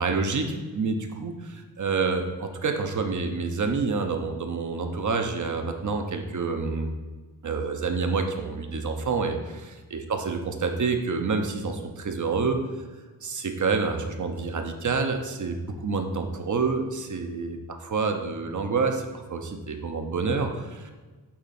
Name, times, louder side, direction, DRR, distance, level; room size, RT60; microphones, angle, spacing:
voice 1, 0.0-6.9 7.4-12.6 13.2-17.6 17.9-20.9, right 4 dB, 50° right, 5 dB, 0.8 m, -28 dB
8.6 x 3.8 x 4.2 m, 1.3 s
wide cardioid pair, 105°, 39 cm